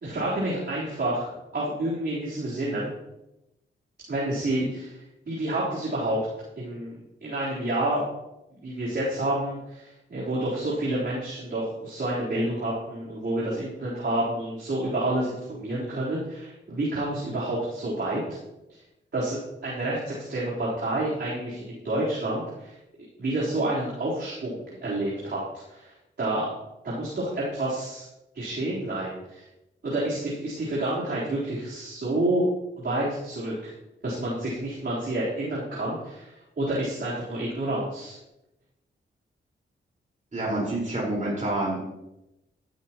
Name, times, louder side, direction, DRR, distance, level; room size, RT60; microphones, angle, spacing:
voice 1, 0.0-2.9 4.1-6.2 6.6-6.9 7.2-8.0 8.6-18.2 19.1-22.7 23.2-25.4 25.7-26.5 26.8-28.0 28.3-29.4 29.8-32.4 32.8-33.7 34.0-38.2, right 1 dB, 55° right, -8 dB, 3.9 m, -29 dB
voice 2, 40.3-41.8, right 1 dB, 35° right, -5 dB, 4.8 m, -28 dB
14.5 x 12.0 x 3.0 m, 0.93 s
wide cardioid pair, 90°, 21 cm